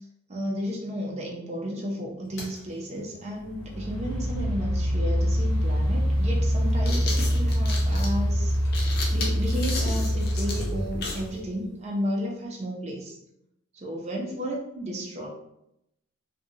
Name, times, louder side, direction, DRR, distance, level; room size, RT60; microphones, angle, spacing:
voice 1, 0.3-8.5 9.1-13.1 13.7-15.3, equal, 30° right, -2 dB, 0.5 m, -33 dB
sound 1, 2.4-2.6 3.5-11.5, equal, 65° left, 0.9 m, -25 dB
sound 2, 5.5-5.6 6.5-11.3, left 3 dB, 45° left, 0.5 m, -35 dB
2.6 x 2.2 x 2.7 m, 0.81 s
head